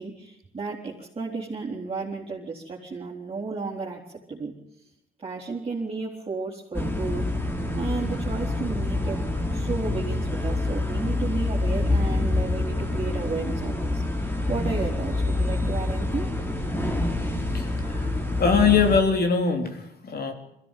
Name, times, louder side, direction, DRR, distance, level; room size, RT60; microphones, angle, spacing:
voice 1, 0.0-4.0 4.3-4.5 5.2-7.3 7.7-9.2 9.5-16.3, right 4 dB, 30° right, -5 dB, 4.3 m, -33 dB
sound 1, 6.7-19.0, left 2 dB, 10° left, 3.4 m, -26 dB
voice 2, 17.5-20.3, left 5 dB, 50° left, 5 dB, 3.9 m, -23 dB
22.5 x 16.0 x 9.4 m, 0.80 s
cardioid pair, 90°, 20 cm